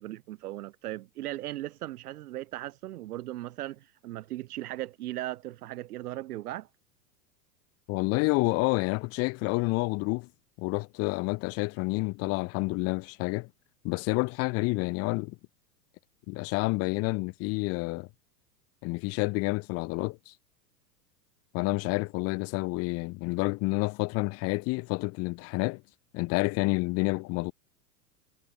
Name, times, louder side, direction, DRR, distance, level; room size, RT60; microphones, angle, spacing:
voice 1, 0.0-6.7, right 15 dB, 65° right, 1.8 m, -38 dB
voice 2, 7.9-10.3 10.6-13.5 13.8-15.4 16.3-18.1 18.8-20.3 21.5-25.8 26.1-27.5, left 26 dB, 30° left, 0.6 m, -29 dB
hypercardioid pair, 95°, 49 cm